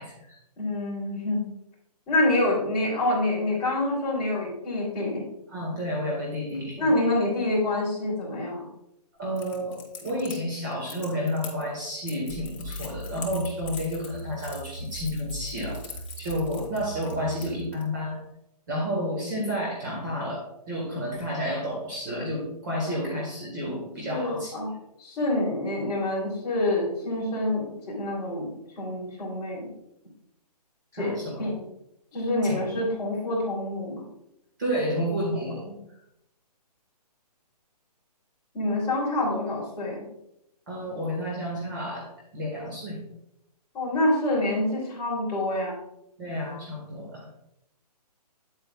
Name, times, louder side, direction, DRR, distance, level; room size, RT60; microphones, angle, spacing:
voice 1, 0.0-0.4 5.5-6.9 9.2-15.8 16.2-18.2 18.7-24.5 30.9-31.5 32.4-32.8 34.6-35.7 40.7-42.1 42.3-43.0 46.2-47.3, equal, 30° right, -3 dB, 1.7 m, -31 dB
voice 2, 0.6-1.4 2.1-5.2 6.8-8.7 22.9-23.0 24.1-24.7 25.0-28.5 28.8-29.7 30.9-31.6 32.1-34.0 38.5-40.0 43.7-45.8, left 1 dB, 15° left, -9 dB, 3.2 m, -27 dB
Crackle, 9.4-17.8, left 5 dB, 50° left, 3.2 m, -43 dB
sound 1, 12.3-17.8, right 1 dB, 60° right, 1.2 m, -39 dB
9.4 x 8.1 x 2.4 m, 0.81 s
hypercardioid pair, 175°, 21 cm